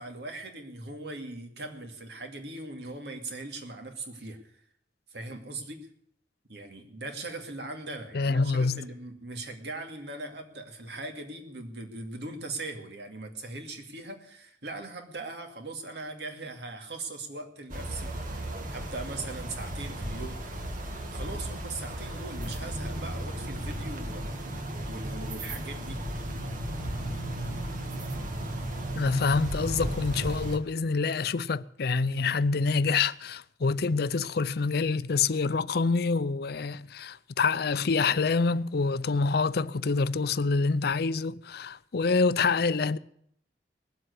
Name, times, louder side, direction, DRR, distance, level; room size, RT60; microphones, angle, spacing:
voice 1, 0.0-4.5 5.1-5.9 6.5-20.5 21.1-24.4 24.9-26.0, right 2 dB, 65° right, 2.4 m, -40 dB
voice 2, 8.1-8.9 29.0-43.0, left 4 dB, 60° left, 0.5 m, -26 dB
sound 1, 17.7-30.6, right 1 dB, 50° right, 1.8 m, -35 dB
19.5 x 7.7 x 8.2 m
head